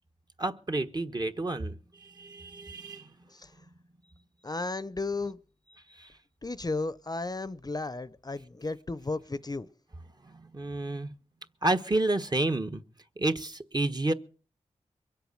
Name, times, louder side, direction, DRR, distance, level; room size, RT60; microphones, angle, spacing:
voice 1, 0.4-3.2 5.9-6.1 10.2-11.1 11.6-12.8 13.2-14.1, right 2 dB, 35° right, 1.3 m, -30 dB
voice 2, 4.4-5.4 6.4-9.7, left 3 dB, 30° left, 0.7 m, -34 dB
23.0 x 8.2 x 6.6 m
cardioid pair, 55°, 13 cm